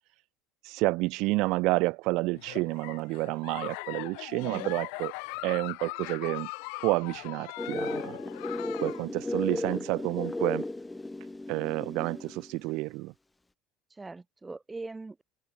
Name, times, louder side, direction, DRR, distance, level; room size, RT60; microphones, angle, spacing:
voice 1, 0.6-5.1 5.4-6.5 6.8-8.2 8.8-10.6 11.5-13.1, right 23 dB, 65° right, 2.3 m, -29 dB
Giggle, 2.3-9.0, left 40 dB or more, 80° left, 6.2 m, -40 dB
voice 2, 4.4-4.7 8.2-8.4 14.0-15.2, right 3 dB, 10° right, 4.8 m, -41 dB
sound 1, 7.6-12.5, left 2 dB, 10° left, 1.2 m, -35 dB
cardioid pair, 150°, 0 cm